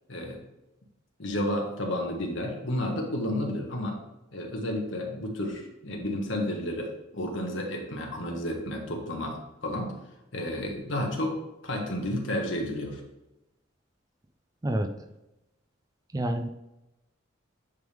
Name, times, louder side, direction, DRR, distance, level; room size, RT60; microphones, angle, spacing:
voice 1, 0.1-0.4 1.2-4.0 4.3-9.9 10.3-13.0, left 1 dB, 70° left, 1 dB, 1.3 m, -31 dB
voice 2, 16.1-16.5, right 1 dB, 15° right, 7 dB, 0.3 m, -27 dB
9.2 x 3.4 x 3.5 m, 0.95 s
head